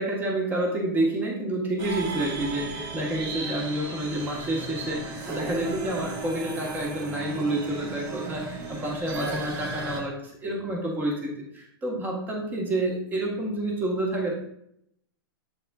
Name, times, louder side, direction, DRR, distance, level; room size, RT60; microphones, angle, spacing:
voice 1, 0.0-14.3, right 1 dB, 15° right, -1 dB, 1.3 m, -29 dB
sound 1, 1.8-10.0, right 3 dB, 30° right, 1.0 m, -35 dB
7.7 x 3.6 x 3.5 m, 0.74 s
supercardioid pair, 160°, 12 cm